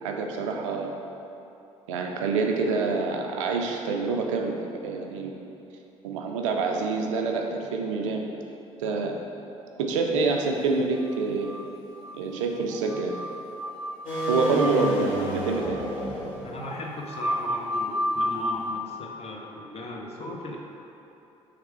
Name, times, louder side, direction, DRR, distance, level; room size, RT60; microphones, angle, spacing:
voice 1, 0.0-0.9 1.9-4.6 4.8-5.3 6.0-8.3 8.8-9.1 9.8-11.6 12.1-13.1 14.3-15.8, right 4 dB, 75° right, 2 dB, 0.4 m, -26 dB
sound 1, 11.1-12.1 12.4-12.5 12.7-18.7, equal, 5° left, 1.3 m, -32 dB
sound 2, 14.0-16.7, equal, 55° left, 1.4 m, -31 dB
voice 2, 16.4-20.6, left 1 dB, 40° left, -1 dB, 0.7 m, -37 dB
3.5 x 3.3 x 4.4 m, 2.9 s
figure-of-eight pair, 50°, 16 cm